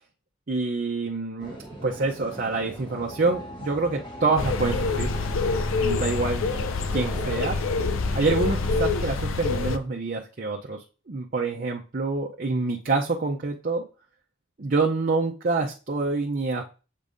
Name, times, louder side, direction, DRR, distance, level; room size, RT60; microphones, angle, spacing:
voice 1, 0.5-1.6 1.8-5.1 5.8-6.4 6.9-7.6 8.1-13.8 14.6-16.6, right 3 dB, 45° right, 0 dB, 0.6 m, -26 dB
sound 1, 1.4-8.8, equal, 20° left, 1.2 m, -40 dB
sound 2, 4.4-9.8, left 3 dB, 85° left, 0.5 m, -26 dB
7.3 x 5.2 x 2.6 m, 0.35 s
head